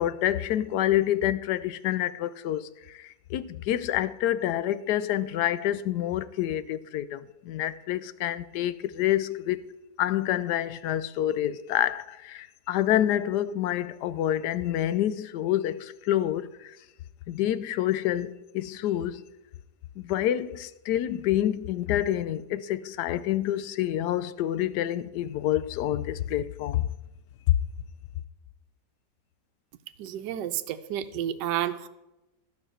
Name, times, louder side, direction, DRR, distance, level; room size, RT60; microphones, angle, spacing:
voice 1, 0.0-9.7 10.0-16.8 17.3-19.2 20.0-26.9 27.5-27.6, left 12 dB, 75° left, 1.1 m, -27 dB
voice 2, 30.0-31.9, right 11 dB, 75° right, 1.2 m, -31 dB
12.0 x 5.7 x 7.6 m
omnidirectional pair, 1.9 m